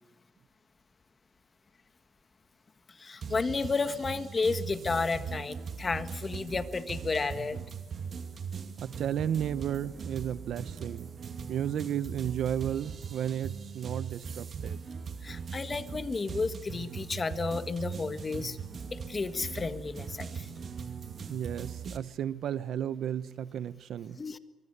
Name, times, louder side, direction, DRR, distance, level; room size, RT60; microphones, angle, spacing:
voice 1, 2.9-7.6 15.2-18.6 18.9-20.6 24.2-24.4, left 4 dB, 30° left, 10 dB, 1.7 m, -32 dB
sound 1, 3.2-22.0, right 6 dB, 50° right, 2.5 m, -40 dB
voice 2, 8.8-11.1 11.5-14.8 21.3-24.2, right 9 dB, 70° right, 15 dB, 1.1 m, -33 dB
23.5 x 23.5 x 6.9 m, 1.2 s
cardioid pair, 90°, 0 cm